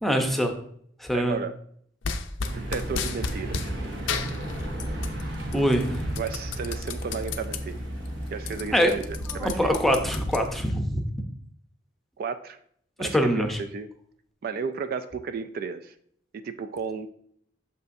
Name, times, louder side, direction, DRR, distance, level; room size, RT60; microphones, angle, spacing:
voice 1, 0.0-0.5 1.0-1.4 5.5-6.2 8.7-8.9 9.3-11.2 13.0-13.6, equal, ahead, 4 dB, 0.6 m, -24 dB
voice 2, 1.1-1.5 2.5-3.7 6.2-7.8 8.3-9.0 9.3-9.7 12.2-12.6 13.0-13.5 13.7-13.9 14.4-15.9 16.3-17.1, right 5 dB, 55° right, 9 dB, 0.3 m, -33 dB
sound 1, 2.0-3.7 4.1-5.2 5.5-7.6 8.0-8.1 8.3-10.8, left 5 dB, 80° left, 0.5 m, -33 dB
sound 2, 2.5-10.7, right 1 dB, 70° right, 1.0 m, -34 dB
6.5 x 5.5 x 2.6 m, 0.65 s
head